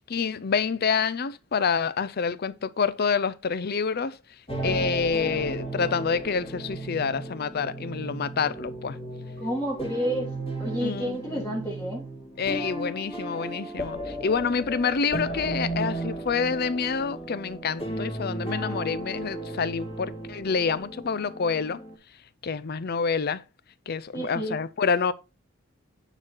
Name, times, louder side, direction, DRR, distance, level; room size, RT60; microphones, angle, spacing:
voice 1, 0.1-4.2 4.6-9.0 10.8-11.6 12.4-21.8 22.4-23.4 23.9-25.1, left 5 dB, 50° left, 0.5 m, -27 dB
sound 1, 4.5-21.9, right 2 dB, 30° left, 2.3 m, -35 dB
voice 2, 9.4-12.0 24.1-24.6, equal, 15° left, 1.6 m, -30 dB
9.1 x 3.9 x 4.4 m
head